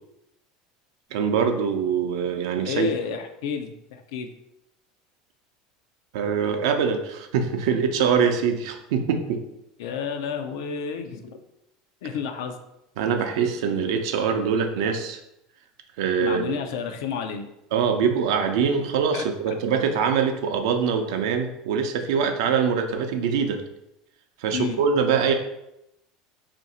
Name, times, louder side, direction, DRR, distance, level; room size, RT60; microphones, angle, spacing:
voice 1, 1.1-2.9 6.1-9.4 13.0-15.2 16.0-16.5 17.7-23.6 24.4-25.3, right 6 dB, 80° right, 5 dB, 0.5 m, -23 dB
voice 2, 2.6-4.3 9.8-11.4 12.0-12.6 16.2-17.5 19.1-19.6 24.5-24.8, left 6 dB, 80° left, 7 dB, 0.4 m, -31 dB
2.8 x 2.5 x 4.1 m, 0.85 s
supercardioid pair, 120°, 2 cm